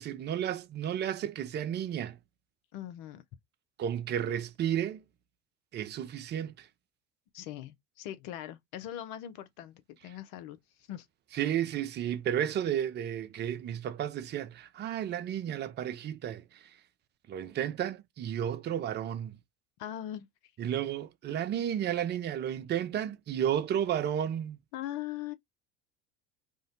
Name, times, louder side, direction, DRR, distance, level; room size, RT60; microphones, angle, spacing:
voice 1, 0.0-2.2 3.8-5.0 5.7-6.7 11.3-16.6 17.3-19.4 20.6-24.6, right 10 dB, 25° right, 0.4 m, -32 dB
voice 2, 2.7-3.2 7.3-10.6 10.9-11.1 19.8-20.3 24.7-25.3, left 12 dB, 55° left, 0.7 m, -40 dB
2.5 x 2.1 x 3.8 m
hypercardioid pair, 70°, 40 cm